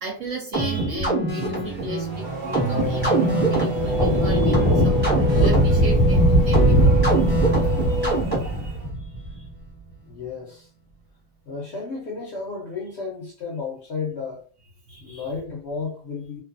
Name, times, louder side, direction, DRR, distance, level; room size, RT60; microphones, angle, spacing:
voice 1, 0.0-9.5 14.9-15.3, right 2 dB, 65° right, 0.8 m, -36 dB
sound 1, 0.5-8.7, right 2 dB, 10° right, 0.8 m, -25 dB
Race car auto racing / Accelerating revving vroom, 1.6-8.9, left 1 dB, 90° right, 0.4 m, -29 dB
sound 2, 3.8-9.4, right 1 dB, 10° left, 1.0 m, -20 dB
voice 2, 10.1-10.7 11.5-14.4 15.0-16.4, left 4 dB, 60° left, 0.7 m, -33 dB
2.5 x 2.2 x 2.4 m
omnidirectional pair, 1.7 m